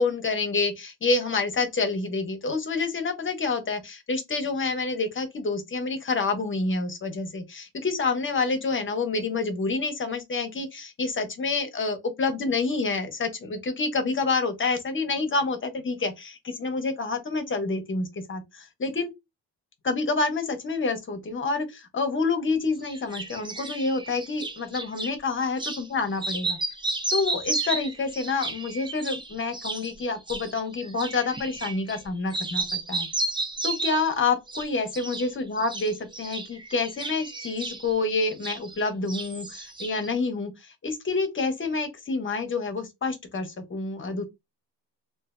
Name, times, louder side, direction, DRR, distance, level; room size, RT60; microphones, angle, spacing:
voice 1, 0.0-19.1 19.8-26.6 27.1-33.1 33.6-44.2, left 3 dB, 30° left, 0.7 m, -28 dB
sound 1, 22.8-25.1 25.6-25.8 26.1-32.0 32.3-34.1 34.5-35.3 35.6-38.8 39.1-40.1, right 2 dB, 10° right, 0.3 m, -33 dB
3.1 x 2.4 x 2.4 m
wide cardioid pair, 140°, 44 cm